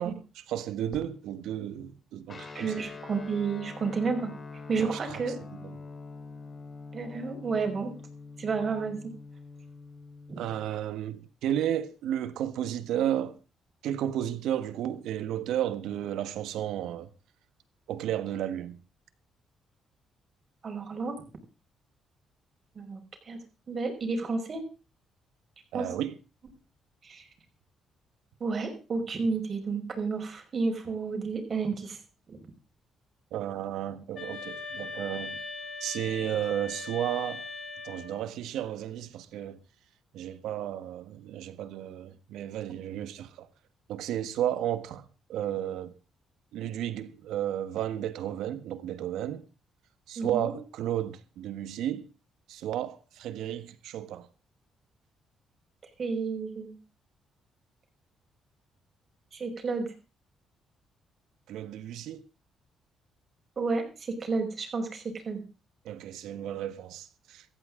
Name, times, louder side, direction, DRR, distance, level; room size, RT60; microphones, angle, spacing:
voice 1, 0.0-2.8 4.8-5.2 5.6-5.8 10.4-13.4 13.8-17.1 17.9-18.8 25.7-26.1 33.3-35.4 35.8-37.5 37.8-39.6 40.1-43.5 43.9-45.9 46.5-49.4 50.1-52.1 52.5-54.3 61.5-62.2 65.8-67.4, right 11 dB, 85° right, 1.4 m, -33 dB
Guitar, 2.3-10.8, left 4 dB, 35° left, 3.6 m, -45 dB
voice 2, 2.5-4.3 4.7-5.4 6.9-7.9 8.4-9.0 10.3-10.4 20.6-21.2 22.8-23.0 23.2-23.4 23.7-24.6 25.7-25.9 27.0-27.3 28.4-32.0 32.3-32.4 50.2-50.6 56.0-56.7 59.3-59.9 63.6-65.4, right 4 dB, 45° right, 5.4 m, -31 dB
sound 1, 34.1-38.3, left 3 dB, 55° left, 6.8 m, -40 dB
17.5 x 14.5 x 3.8 m
cardioid pair, 90°, 0 cm